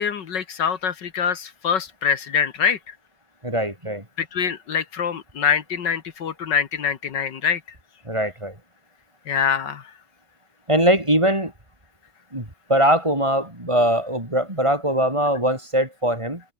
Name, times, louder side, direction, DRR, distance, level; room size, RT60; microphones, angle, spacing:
voice 1, 0.0-3.0 4.2-7.6 9.3-9.9, left 7 dB, 70° left, 2.1 m, -24 dB
voice 2, 3.4-4.1 8.1-8.6 10.7-11.5 12.3-16.4, right 1 dB, 15° right, 3.7 m, -21 dB
omnidirectional pair, 2.0 m